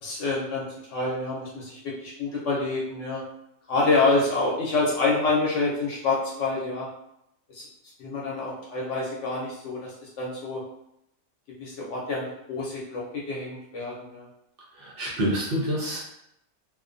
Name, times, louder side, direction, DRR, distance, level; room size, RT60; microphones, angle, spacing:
voice 1, 0.0-3.2 3.7-6.9 7.5-7.7 8.0-10.6 11.6-14.3, left 3 dB, 65° left, -4 dB, 0.9 m, -27 dB
voice 2, 14.8-16.0, equal, 60° right, -4 dB, 0.6 m, -27 dB
2.5 x 2.1 x 2.5 m, 0.79 s
omnidirectional pair, 1.5 m